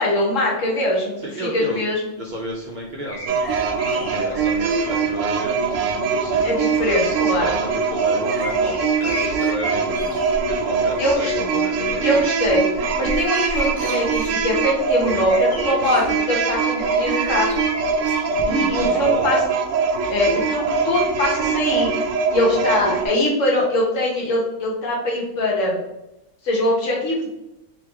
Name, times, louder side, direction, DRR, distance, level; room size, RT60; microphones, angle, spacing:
voice 1, 0.0-2.1 6.4-7.5 11.0-11.3 12.0-12.6 13.0-17.5 18.4-19.4 20.1-22.0 22.3-25.8 26.4-27.3, left 1 dB, 75° left, -3 dB, 1.4 m, -22 dB
voice 2, 1.2-1.8 2.2-3.4 3.9-10.1 10.5-12.2 18.6-19.3, equal, 50° right, -1 dB, 0.6 m, -32 dB
sound 1, 3.1-5.1 6.0-6.1 7.7-10.6 10.9-11.3 11.7-16.1 16.7-18.9 19.1-19.2, equal, 35° left, 0.4 m, -34 dB
sound 2, 3.3-23.1, right 5 dB, 80° right, 0.9 m, -22 dB
3.2 x 3.0 x 3.5 m, 0.90 s
omnidirectional pair, 1.3 m